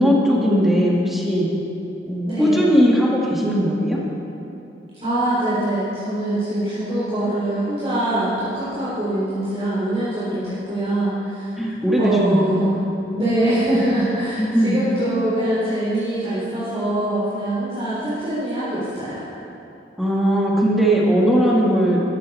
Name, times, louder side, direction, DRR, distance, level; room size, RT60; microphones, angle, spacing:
voice 1, 0.0-1.5 2.1-4.0 11.6-13.4 14.4-14.8 20.0-22.0, equal, ahead, -4 dB, 1.9 m, -19 dB
voice 2, 2.2-2.7 5.0-11.5 12.0-12.7 13.2-19.2, right 1 dB, 35° right, -12 dB, 3.7 m, -23 dB
13.5 x 13.5 x 4.2 m, 2.9 s
head